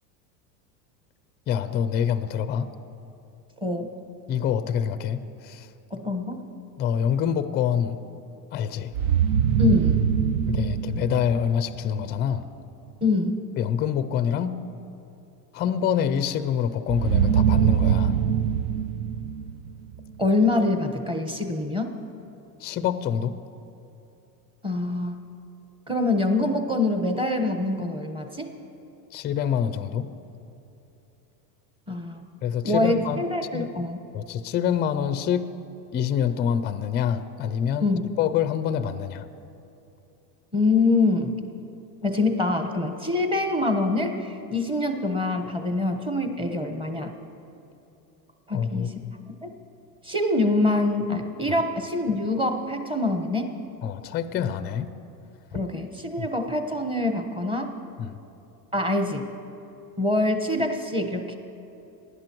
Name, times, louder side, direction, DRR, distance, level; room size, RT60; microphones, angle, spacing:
voice 1, 1.5-2.7 4.3-5.7 6.8-8.0 8.5-8.9 10.5-12.4 13.6-14.6 15.5-18.2 22.6-23.4 29.1-30.1 32.4-33.3 33.5-33.7 34.1-35.4 35.9-39.3 48.5-49.1 51.5-51.6 53.8-54.9 55.5-55.6 56.2-56.3 58.0-58.2, left 8 dB, 25° left, 12 dB, 0.4 m, -26 dB
voice 2, 3.6-3.9 5.9-6.4 9.6-10.0 13.0-13.4 20.2-22.0 24.6-25.2 25.9-28.5 31.9-32.2 32.6-34.0 37.8-38.1 40.5-41.3 42.0-47.1 48.5-49.0 49.4-49.5 50.0-53.5 55.5-57.7 58.7-59.3 60.0-61.4, left 2 dB, 10° right, 5 dB, 1.1 m, -25 dB
sound 1, 8.9-11.9 16.9-20.1, right 8 dB, 65° right, 0.7 m, -23 dB
19.0 x 11.0 x 3.0 m, 2.9 s
supercardioid pair, 105°, 48 cm